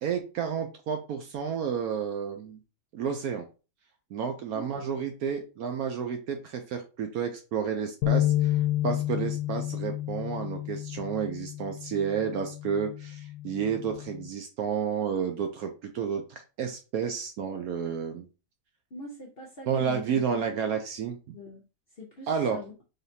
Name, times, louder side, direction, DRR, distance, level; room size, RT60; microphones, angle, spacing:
voice 1, 0.0-2.6 2.9-3.4 4.1-18.3 19.7-21.4 22.3-22.6, right 7 dB, 70° right, 5 dB, 0.9 m, -31 dB
voice 2, 4.5-4.8 18.9-20.2 21.3-21.6 21.9-22.7, left 2 dB, 50° left, 0 dB, 0.7 m, -43 dB
sound 1, 8.0-14.3, left 14 dB, 75° left, 1.2 m, -30 dB
4.0 x 3.2 x 2.7 m, 0.32 s
omnidirectional pair, 1.9 m